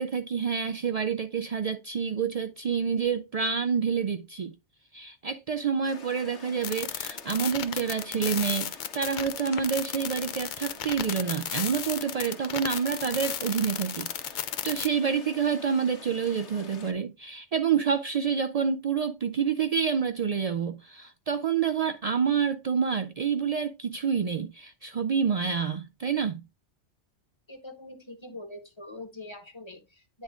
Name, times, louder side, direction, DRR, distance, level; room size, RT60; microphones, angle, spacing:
voice 1, 0.0-4.5 4.9-14.4 14.6-26.4, right 6 dB, 75° right, 0.3 m, -28 dB
sound 1, 5.8-16.9, left 4 dB, 75° left, 1.4 m, -48 dB
sound 2, 6.6-14.9, left 9 dB, 55° left, 0.6 m, -34 dB
voice 2, 27.5-30.2, left 2 dB, 25° left, 1.0 m, -43 dB
9.7 x 3.7 x 3.5 m
omnidirectional pair, 1.2 m